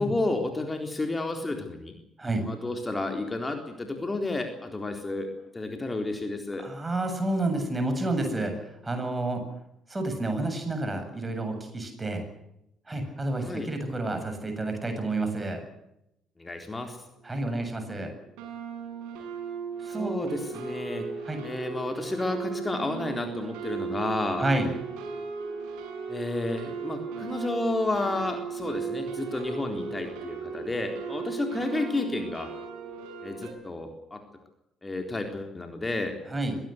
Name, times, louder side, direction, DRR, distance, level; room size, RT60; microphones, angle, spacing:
voice 1, 0.0-1.9 2.5-5.3 5.5-6.7 13.4-13.7 16.4-17.0 19.9-21.1 21.4-24.5 26.1-32.5 33.2-34.2 34.8-36.2, left 2 dB, 20° left, 4 dB, 3.9 m, -31 dB
voice 2, 6.6-9.4 9.9-12.2 12.9-15.6 17.2-18.1 19.8-20.3 21.2-21.4 24.4-24.7 36.3-36.6, right 2 dB, 20° right, 6 dB, 7.8 m, -30 dB
sound 1, 17.2-17.3 17.5-17.9 18.4-33.5, right 6 dB, 70° right, 6.5 m, -36 dB
23.5 x 18.0 x 8.0 m, 0.82 s
figure-of-eight pair, 45°, 0 cm